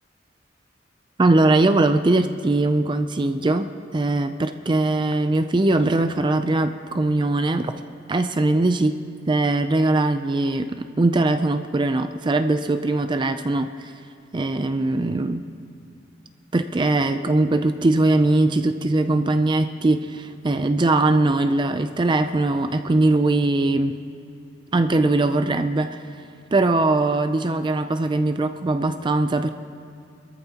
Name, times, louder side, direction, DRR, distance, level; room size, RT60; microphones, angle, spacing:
voice 1, 1.2-3.7 3.9-7.7 8.1-8.9 9.3-10.7 11.0-13.9 14.3-15.4 16.5-23.9 24.7-26.0 26.5-29.5, right 2 dB, 25° right, 9 dB, 0.4 m, -21 dB
24.5 x 14.0 x 2.9 m, 2.5 s
head